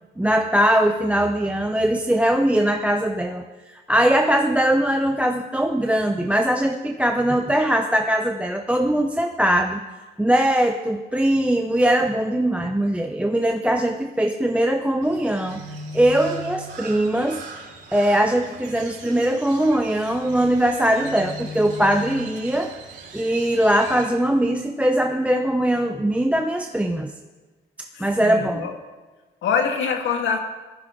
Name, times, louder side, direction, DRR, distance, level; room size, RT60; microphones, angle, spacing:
voice 1, 0.2-3.4 3.9-9.8 10.2-15.6 15.9-17.4 17.9-22.7 23.1-27.1 28.0-28.7, right 1 dB, 5° right, 4 dB, 0.8 m, -21 dB
Crow, 15.0-24.1, right 1 dB, 60° right, 4.3 m, -38 dB
voice 2, 27.9-28.7 29.4-30.4, left 6 dB, 75° left, 3 dB, 2.0 m, -24 dB
16.5 x 14.5 x 3.8 m, 1.3 s
cardioid pair, 90°, 20 cm